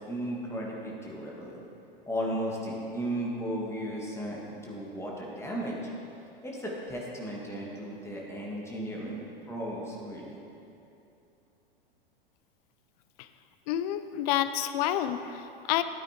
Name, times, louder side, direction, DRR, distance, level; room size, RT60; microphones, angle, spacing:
voice 1, 0.0-1.6 2.1-5.8 6.4-10.4, equal, 10° left, -3 dB, 1.8 m, -35 dB
voice 2, 13.7-15.8, left 12 dB, 45° left, 11 dB, 0.5 m, -29 dB
13.0 x 8.7 x 3.0 m, 2.8 s
figure-of-eight pair, 95°, 29 cm